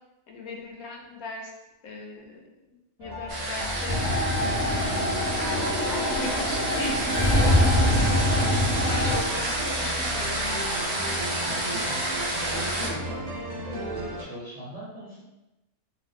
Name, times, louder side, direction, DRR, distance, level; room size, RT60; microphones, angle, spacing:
voice 1, 0.3-1.5 1.8-4.0 4.4-10.4, left 3 dB, 90° left, 1 dB, 1.1 m, -39 dB
sound 1, 3.0-14.2, equal, 85° right, 0.3 m, -35 dB
sound 2, 3.3-12.9, right 1 dB, 55° right, 0.9 m, -30 dB
sound 3, 3.9-9.2, left 1 dB, 45° left, 0.6 m, -24 dB
voice 2, 11.5-12.0 12.5-13.2 13.6-15.2, right 1 dB, 30° right, -8 dB, 0.8 m, -39 dB
2.8 x 2.0 x 3.6 m, 0.98 s
omnidirectional pair, 1.5 m